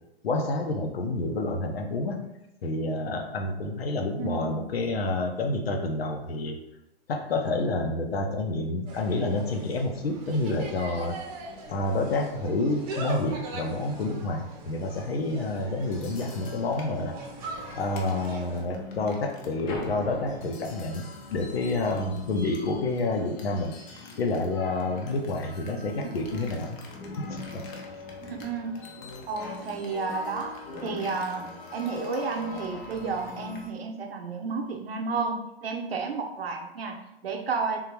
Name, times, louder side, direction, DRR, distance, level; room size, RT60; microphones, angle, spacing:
voice 1, 0.2-2.2 2.6-6.6 7.1-11.2 11.7-17.1 17.7-23.7 24.2-26.8 27.2-27.6, left 2 dB, 75° left, 4 dB, 0.8 m, -29 dB
voice 2, 4.2-4.6 26.3-26.5 28.2-28.8 29.3-30.5 30.8-37.8, right 4 dB, 75° right, 4 dB, 0.7 m, -32 dB
Insect, 8.9-18.6, right 2 dB, 40° right, 0.8 m, -41 dB
sound 1, 15.8-33.7, left 3 dB, 25° left, 0.6 m, -41 dB
3.7 x 2.8 x 2.9 m, 0.88 s
hypercardioid pair, 120°, 30 cm